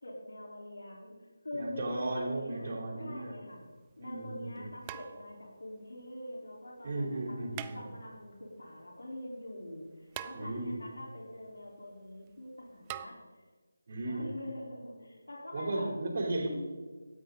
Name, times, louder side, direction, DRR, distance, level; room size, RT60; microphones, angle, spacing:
voice 1, 0.0-1.1 1.4-2.7 3.0-3.6 4.0-7.4 7.7-13.1 14.0-15.9, left 1 dB, 85° left, -2 dB, 4.3 m, -44 dB
voice 2, 1.5-3.3 4.0-4.7 6.8-7.8 10.3-10.8 13.9-14.3 15.5-16.5, right 2 dB, 45° right, 0 dB, 4.1 m, -35 dB
sound 1, 3.5-3.6 4.9-5.6 7.5-8.3 10.1-10.9 12.9-13.1, right 12 dB, 15° right, 0.3 m, -44 dB
16.5 x 13.0 x 4.0 m, 1.4 s
figure-of-eight pair, 170°, 0 cm